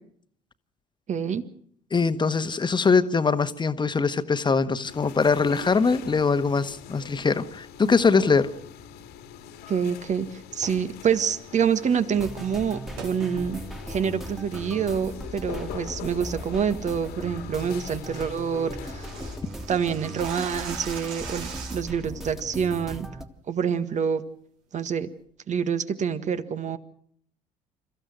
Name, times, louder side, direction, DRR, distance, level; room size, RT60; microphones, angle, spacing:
voice 1, 1.1-1.4 9.7-10.3 10.5-13.6 13.9-19.1 19.7-23.1 23.5-24.2 24.7-25.1 25.5-26.8, right 7 dB, 40° right, 11 dB, 1.8 m, -27 dB
voice 2, 1.9-8.5, left 4 dB, 25° left, 12 dB, 1.5 m, -22 dB
sound 1, 4.8-19.4, left 9 dB, 60° left, 2.1 m, -42 dB
sound 2, 10.5-10.9 13.0-13.2 13.6-13.7 14.3-14.5 14.9-15.3 15.6-15.9 16.2-16.3 16.7-17.0 17.3-17.4 17.7-17.8 18.0-18.1 18.4-22.0, right 6 dB, 70° right, 4.7 m, -40 dB
sound 3, 12.1-23.3, right 1 dB, ahead, 2.2 m, -38 dB
29.5 x 15.0 x 6.4 m, 0.62 s
figure-of-eight pair, 55°, 19 cm